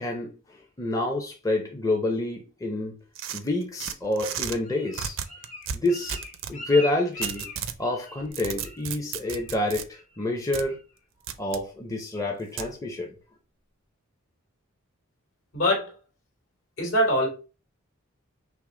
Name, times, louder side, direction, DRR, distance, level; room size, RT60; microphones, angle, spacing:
voice 1, 0.0-2.9 3.3-5.2 5.7-6.2 6.5-7.5 7.8-10.8 11.4-13.1, left 2 dB, 15° left, 0.6 m, -28 dB
sound 1, 3.2-4.6 4.9-6.6 7.2-7.8 8.2-9.9 10.5-10.7 11.3-11.6 12.6-12.7, right 8 dB, 65° right, 0.5 m, -34 dB
Bird, 4.2-8.3 8.6-8.9 9.2-9.6 9.9-10.3 10.7-10.8, left 1 dB, 40° left, 1.6 m, -40 dB
voice 2, 15.5-15.9 16.8-17.3, equal, 65° left, 2.6 m, -23 dB
5.9 x 2.0 x 3.7 m
head